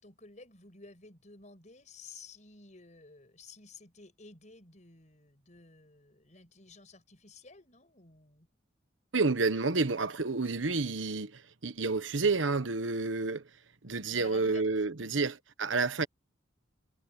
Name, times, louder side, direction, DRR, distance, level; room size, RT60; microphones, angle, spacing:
voice 1, 0.0-8.5 14.1-14.6, left 3 dB, 40° left, 5.6 m, -53 dB
voice 2, 9.1-13.4 13.8-16.1, right 3 dB, 90° right, 1.2 m, -30 dB
head